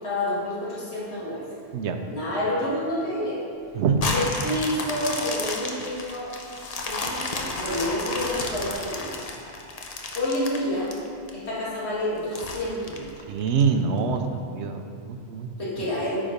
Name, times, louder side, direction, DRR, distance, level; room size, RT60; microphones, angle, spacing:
voice 1, 0.0-1.4 2.1-3.4 4.1-6.3 6.9-9.1 10.1-10.9 11.3-13.2 15.6-16.2, left 1 dB, 75° left, -7 dB, 2.4 m, -28 dB
sound 1, 4.0-11.3 11.8-11.9 12.3-13.6 14.2-14.3, left 2 dB, 40° left, 0.8 m, -32 dB
voice 2, 13.3-14.2 14.5-15.5, right 6 dB, 90° right, 6 dB, 1.0 m, -24 dB
8.8 x 5.1 x 5.2 m, 2.5 s
omnidirectional pair, 1.1 m